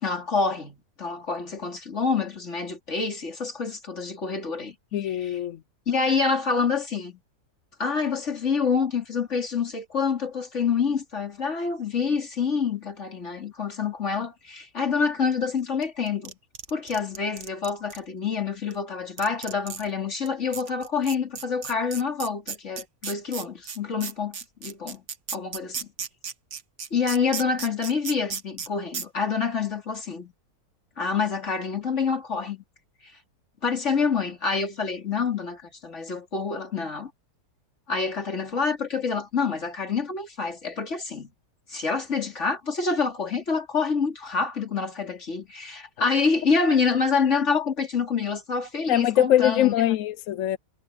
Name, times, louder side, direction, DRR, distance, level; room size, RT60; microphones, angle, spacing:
voice 1, 0.0-4.7 5.0-5.4 5.9-7.2 7.8-16.3 16.7-25.0 25.3-25.9 26.9-30.3 31.0-32.6 33.6-37.1 37.9-41.3 41.7-49.7, left 5 dB, 45° left, 3.3 m, -27 dB
voice 2, 4.9-5.6 48.9-50.6, left 12 dB, 70° left, 0.8 m, -22 dB
sound 1, 15.8-18.0 18.7-18.8 19.2-19.9 20.3-20.4 20.5-28.7 28.9-29.0, right 7 dB, 50° right, 1.4 m, -34 dB
omnidirectional pair, 1.7 m